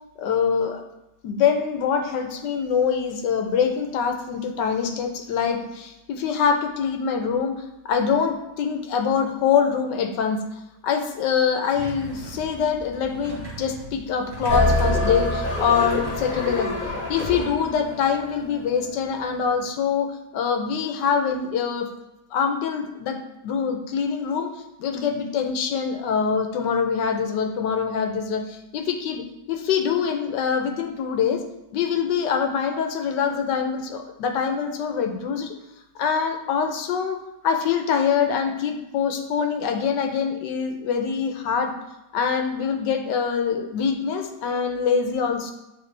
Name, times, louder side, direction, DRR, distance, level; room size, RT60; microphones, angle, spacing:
voice 1, 0.2-0.8 1.2-7.5 7.8-10.4 10.8-16.8 17.1-21.9 22.3-23.2 23.4-24.5 24.8-29.2 29.5-31.4 31.7-35.5 36.0-37.2 37.4-41.7 42.1-45.5, left 6 dB, 75° left, 5 dB, 1.3 m, -24 dB
sound 1, 11.7-17.7, right 2 dB, 40° right, 1.4 m, -39 dB
sound 2, 14.5-18.8, left 2 dB, 35° left, 1.2 m, -25 dB
9.0 x 3.2 x 3.3 m, 0.91 s
omnidirectional pair, 1.9 m